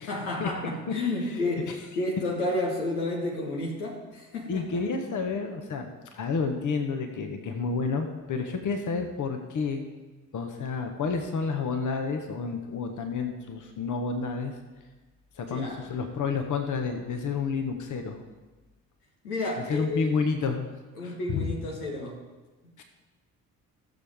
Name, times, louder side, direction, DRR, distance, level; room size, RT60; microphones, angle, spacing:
voice 1, 0.1-4.8 15.5-15.9 19.2-20.2 21.0-22.2, left 2 dB, 80° left, -1 dB, 1.7 m, -31 dB
voice 2, 4.5-9.8 10.3-14.5 15.4-18.2 19.7-20.7 21.0-21.5 22.8-22.9, left 5 dB, 45° left, 5 dB, 1.4 m, -30 dB
17.0 x 7.1 x 3.7 m, 1.2 s
figure-of-eight pair, 45°, 44 cm